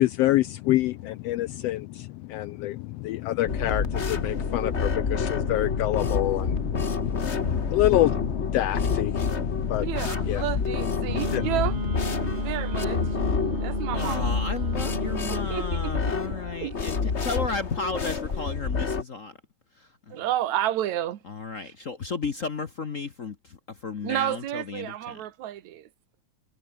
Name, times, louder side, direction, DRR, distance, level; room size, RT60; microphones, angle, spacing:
voice 1, 0.0-10.5 10.8-11.5, left 15 dB, 80° left, 1.5 m, -27 dB
sound 1, 3.5-19.0, left 5 dB, 30° left, 1.3 m, -28 dB
voice 2, 9.8-13.0 13.6-14.4 15.3-16.9 20.1-21.2 21.6-21.7 24.0-25.9, right 12 dB, 75° right, 2.6 m, -31 dB
Wind instrument woodwind instrument, 11.0-15.4, right 4 dB, 50° right, 5.2 m, -35 dB
voice 3, 13.9-19.3 20.1-20.2 21.3-23.6 23.8-25.2, left 4 dB, 55° left, 0.8 m, -33 dB
omnidirectional pair, 3.3 m